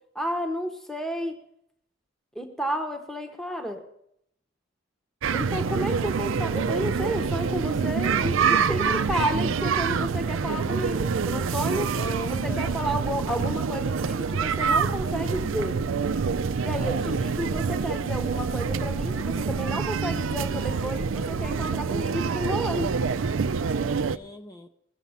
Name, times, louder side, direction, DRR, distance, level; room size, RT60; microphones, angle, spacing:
voice 1, 0.1-1.4 2.3-3.8 5.3-8.8 9.1-11.9 12.3-15.8 16.6-22.9, equal, 5° left, 5 dB, 1.0 m, -31 dB
sound 1, 5.2-24.2, right 5 dB, 90° right, 0.5 m, -26 dB
voice 2, 8.2-8.9 11.9-12.8 16.7-17.3 24.1-24.7, left 3 dB, 20° left, 6 dB, 0.6 m, -39 dB
20.5 x 7.3 x 5.6 m, 0.75 s
head